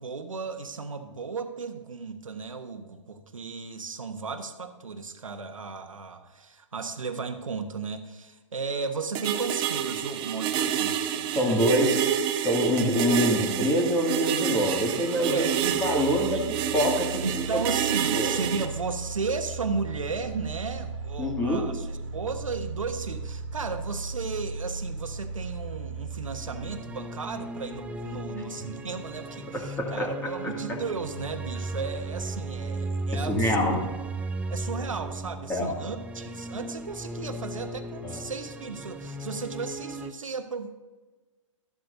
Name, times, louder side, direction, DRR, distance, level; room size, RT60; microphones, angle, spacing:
voice 1, 0.0-11.3 15.3-15.8 16.3-16.4 17.2-21.9 22.1-33.7 34.5-40.7, right 4 dB, 90° right, 6 dB, 1.2 m, -34 dB
sound 1, 9.1-18.7, right 10 dB, 30° right, 0.9 m, -28 dB
voice 2, 11.3-12.2 12.4-15.5 15.8-17.6 18.1-18.4 21.2-21.7 29.5-30.1 33.1-33.9 35.5-35.7 38.0-38.2, equal, 15° left, 0 dB, 2.3 m, -26 dB
sound 2, 14.7-26.8, right 3 dB, 70° right, 1.8 m, -37 dB
sound 3, 26.3-40.1, right 2 dB, 10° right, 0.5 m, -36 dB
13.0 x 12.0 x 2.7 m, 1.2 s
hypercardioid pair, 125°, 16 cm